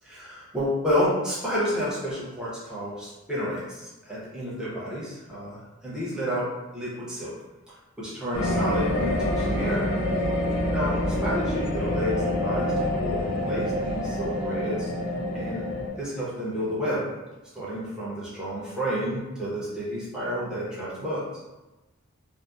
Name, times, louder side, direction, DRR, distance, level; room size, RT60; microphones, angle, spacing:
voice 1, 0.0-7.3 7.7-9.8 10.7-14.9 15.3-15.7 16.0-17.1 17.5-21.2, equal, 5° right, -9 dB, 0.6 m, -30 dB
sound 1, 8.3-15.9, left 1 dB, 90° left, 0.6 m, -26 dB
2.6 x 2.0 x 2.3 m, 1.1 s
head